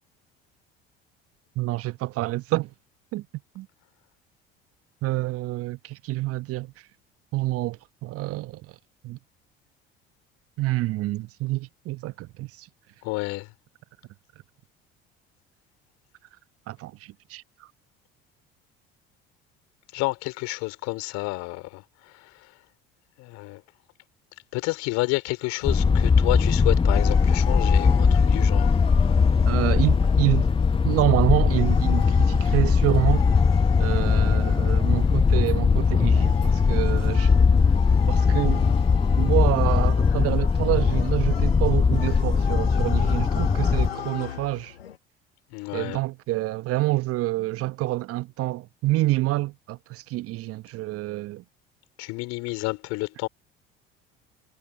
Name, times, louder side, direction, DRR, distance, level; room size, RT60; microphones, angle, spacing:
voice 1, 1.6-2.7 3.1-3.2 3.5-3.7 5.0-6.7 7.3-8.6 9.0-9.2 10.6-12.7 16.7-17.7 29.4-30.5 30.8-33.3 33.8-37.3 38.1-38.7 39.2-44.7 45.7-51.4, right 18 dB, 50° right, 1.1 m, -27 dB
voice 2, 13.0-13.5 19.9-22.6 23.2-23.6 24.5-28.7 29.0-29.2 45.5-46.0 52.0-53.3, left 24 dB, 60° left, 4.0 m, -30 dB
sound 1, 25.6-45.0, left 9 dB, 85° left, 0.9 m, -38 dB
sound 2, 25.6-43.9, left 5 dB, 20° left, 0.8 m, -20 dB
figure-of-eight pair, 60°, 30 cm